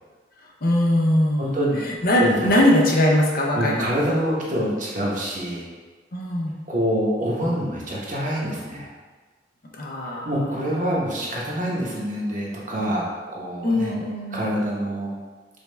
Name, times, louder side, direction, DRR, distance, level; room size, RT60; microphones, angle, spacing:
voice 1, 0.6-4.0 6.1-6.5 9.7-10.3 10.6-11.0 13.6-14.4, left 1 dB, 55° left, -1 dB, 0.7 m, -21 dB
voice 2, 1.4-1.8 2.2-2.5 3.5-5.7 6.7-8.9 10.1-14.0 14.3-15.1, equal, 45° right, -4 dB, 0.9 m, -26 dB
5.2 x 2.3 x 3.2 m, 1.4 s
head